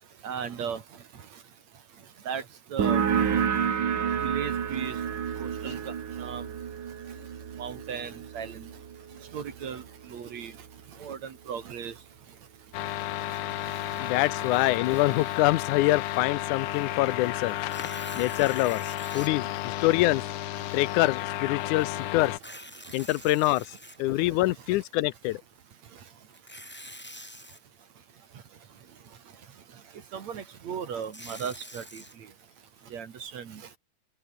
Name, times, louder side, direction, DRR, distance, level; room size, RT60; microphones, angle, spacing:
voice 1, 0.2-0.8 2.3-2.4 2.7-3.0 4.2-4.9 5.4-5.9 6.2-6.4 7.6-8.6 9.3-9.8 10.1-10.5 11.0-11.9 30.1-32.0 32.9-33.6, right 7 dB, 65° right, 3.4 m, -36 dB
sound 1, 2.8-10.1, right 8 dB, 90° right, 4.2 m, -30 dB
sound 2, 12.7-22.4, left 13 dB, 75° left, 1.3 m, -33 dB
voice 2, 14.0-17.6 18.1-20.2 20.7-22.3 22.9-25.4, left 18 dB, 90° left, 2.1 m, -25 dB
Tearing, 17.6-19.3 20.0-20.1 22.3-24.4 26.3-27.6 30.7-32.1, left 1 dB, 5° left, 2.6 m, -45 dB
open air
omnidirectional pair, 3.5 m